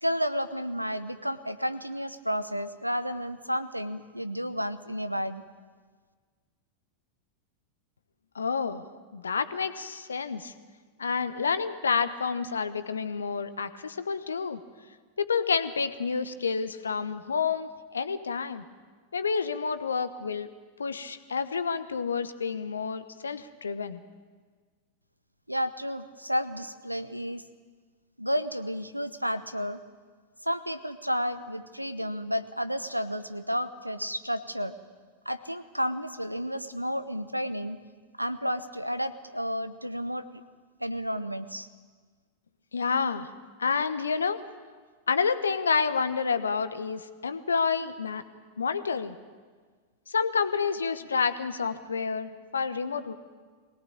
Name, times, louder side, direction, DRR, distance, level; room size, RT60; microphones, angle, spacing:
voice 1, 0.0-5.4 25.5-27.4 28.2-29.8 30.4-34.7 35.2-37.8 38.2-40.3 40.8-41.7, equal, 90° right, 12 dB, 1.0 m, -31 dB
voice 2, 8.3-8.8 9.1-10.5 11.0-14.6 15.2-18.6 19.1-20.5 20.8-24.0 42.7-43.3 43.6-44.4 45.1-48.2 48.6-49.2 50.1-53.1, left 5 dB, 70° left, 12 dB, 1.1 m, -29 dB
22.0 x 18.5 x 8.8 m, 1.5 s
figure-of-eight pair, 90°, 0 cm